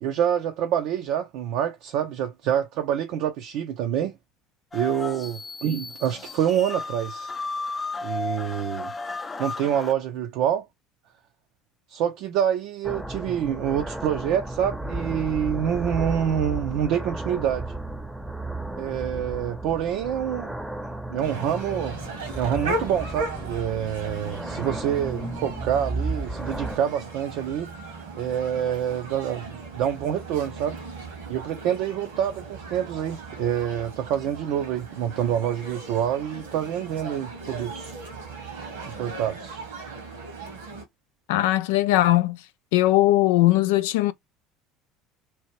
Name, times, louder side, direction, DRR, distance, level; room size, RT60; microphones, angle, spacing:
voice 1, 0.0-4.2 4.7-7.3 8.0-8.9 9.4-10.6 11.9-17.7 18.8-20.6 21.1-22.0 22.3-27.7 28.2-29.5 29.7-30.8 31.3-38.0 39.0-39.6, right 9 dB, 65° right, 0.6 m, -26 dB
sound 1, 4.7-9.9, left 3 dB, 25° left, 0.5 m, -34 dB
sound 2, 12.8-26.8, right 2 dB, 5° right, 0.8 m, -34 dB
sound 3, 21.2-40.8, right 2 dB, 85° right, 1.3 m, -37 dB
voice 2, 41.3-42.4 42.7-44.1, left 16 dB, 75° left, 0.4 m, -19 dB
2.9 x 2.5 x 3.1 m
hypercardioid pair, 70°, 0 cm